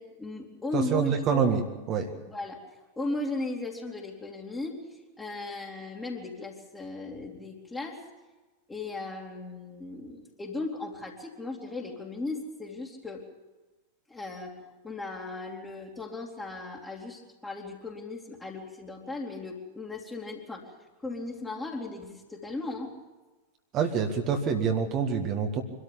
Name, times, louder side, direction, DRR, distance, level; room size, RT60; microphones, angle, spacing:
voice 1, 0.0-1.5 2.3-2.6 3.0-4.8 5.2-8.0 8.7-13.3 14.1-20.7 21.0-23.0, left 2 dB, 10° left, -3 dB, 2.9 m, -37 dB
voice 2, 0.7-2.1 23.7-25.6, right 6 dB, 35° right, 5 dB, 1.8 m, -26 dB
24.5 x 13.0 x 8.6 m, 1.2 s
figure-of-eight pair, 90°, 0 cm